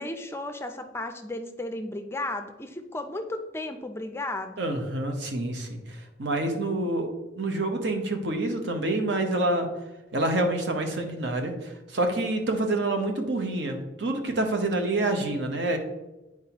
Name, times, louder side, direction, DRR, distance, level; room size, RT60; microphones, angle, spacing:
voice 1, 0.0-4.6, left 2 dB, 15° left, 6 dB, 0.4 m, -34 dB
voice 2, 4.6-9.7 10.1-15.8, right 2 dB, 65° right, 4 dB, 0.9 m, -27 dB
8.7 x 4.6 x 2.9 m, 1.0 s
head